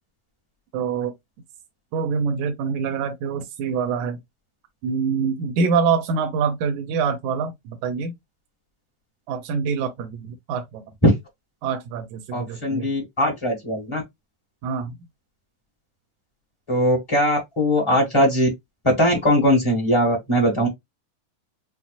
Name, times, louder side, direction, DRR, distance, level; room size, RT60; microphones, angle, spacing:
voice 1, 0.7-1.1 1.9-4.2 4.8-8.2 9.3-10.8 11.6-12.9 14.6-15.0, right 5 dB, 85° right, 2.0 m, -25 dB
voice 2, 12.3-14.0 16.7-18.5 18.8-20.7, equal, 20° left, 0.8 m, -20 dB
5.8 x 2.1 x 2.5 m
omnidirectional pair, 3.5 m